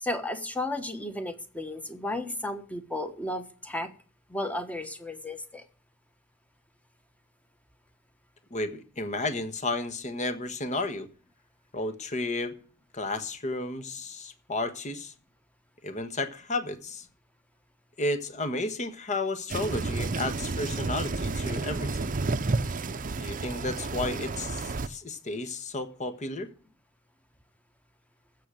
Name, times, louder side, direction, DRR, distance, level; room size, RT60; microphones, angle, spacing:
voice 1, 0.0-3.9 4.3-5.6, left 1 dB, 5° left, 1.3 m, -33 dB
voice 2, 8.5-11.1 11.7-12.6 12.9-15.1 15.8-17.1 18.0-22.2 23.2-26.5, left 2 dB, 35° left, 1.4 m, -32 dB
sound 1, 19.5-24.9, right 3 dB, 40° right, 0.7 m, -31 dB
15.0 x 6.6 x 7.5 m
head